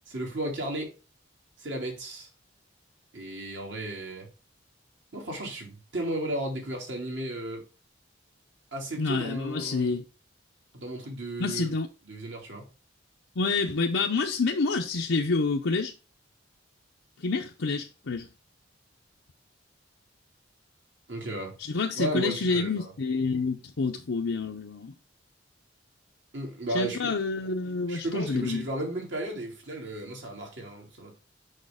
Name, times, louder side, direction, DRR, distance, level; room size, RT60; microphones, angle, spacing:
voice 1, 0.1-0.9 1.6-2.3 3.1-4.3 5.1-7.6 8.7-10.0 10.7-11.7 12.0-12.6 21.1-21.5 21.9-22.9 26.3-27.1 27.9-31.1, right 1 dB, 65° right, 2.8 m, -34 dB
voice 2, 9.0-10.0 11.4-11.9 13.4-15.9 17.2-18.3 21.6-24.9 26.7-28.7, left 4 dB, 80° left, 0.7 m, -28 dB
6.5 x 5.7 x 3.6 m
head